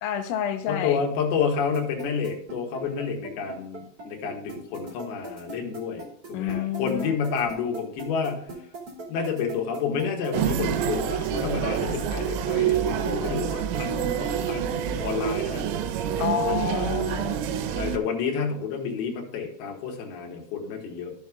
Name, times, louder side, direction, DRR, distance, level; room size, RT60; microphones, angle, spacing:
voice 1, 0.0-1.0 6.3-7.2 16.2-17.4, left 10 dB, 85° left, 5 dB, 3.4 m, -29 dB
voice 2, 0.7-8.5 9.1-15.7 16.3-17.0 17.7-21.1, left 6 dB, 60° left, 1 dB, 2.9 m, -30 dB
sound 1, 1.7-17.3, right 3 dB, 30° right, 2.3 m, -39 dB
sound 2, 10.3-18.0, right 9 dB, 80° right, 3.1 m, -27 dB
13.0 x 7.4 x 2.4 m, 0.69 s
omnidirectional pair, 5.9 m